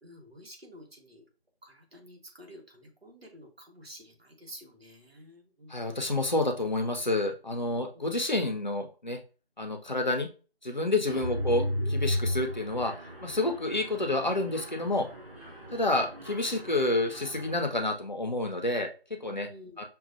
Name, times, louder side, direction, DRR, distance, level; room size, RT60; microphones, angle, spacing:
voice 1, 0.0-1.2 1.6-5.9 7.9-8.2 11.1-11.2 19.3-19.8, equal, 75° right, 1 dB, 1.4 m, -50 dB
voice 2, 5.7-9.2 9.6-10.3 10.6-12.9 13.2-15.1 15.7-19.5 19.8-19.9, left 2 dB, 45° left, 3 dB, 0.6 m, -29 dB
Mechanisms, 11.1-17.8, left 1 dB, 35° right, 1.6 m, -35 dB
6.1 x 2.4 x 2.6 m, 0.35 s
figure-of-eight pair, 170°, 31 cm